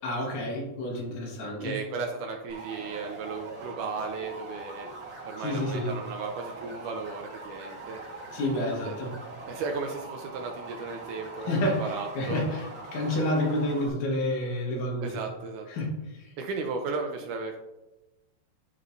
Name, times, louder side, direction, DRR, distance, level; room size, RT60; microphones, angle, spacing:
voice 1, 0.0-1.8 5.4-5.9 8.3-9.1 11.5-15.1 15.7-16.3, left 1 dB, 80° left, -1 dB, 3.2 m, -29 dB
voice 2, 1.6-4.9 5.3-8.0 8.9-9.0 9.5-12.4 13.0-13.1 15.0-15.7 16.4-17.6, right 4 dB, 80° right, 3 dB, 1.9 m, -35 dB
sound 1, 2.5-13.9, right 2 dB, 45° right, 1.2 m, -42 dB
13.0 x 4.4 x 2.7 m, 1.0 s
omnidirectional pair, 4.0 m